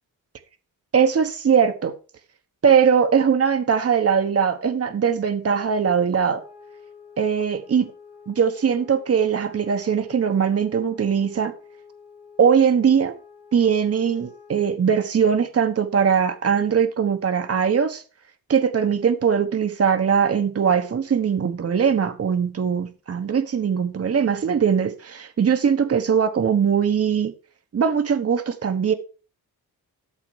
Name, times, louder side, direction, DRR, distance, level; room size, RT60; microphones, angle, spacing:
voice 1, 0.9-1.9 2.6-6.4 7.2-7.9 8.3-11.5 12.4-13.1 13.5-18.0 18.5-27.3 27.7-28.9, right 7 dB, 40° right, 1.2 m, -20 dB
sound 1, 6.3-14.7, left 5 dB, 10° right, 4.2 m, -48 dB
13.0 x 6.7 x 4.8 m
wide cardioid pair, 160°, 36 cm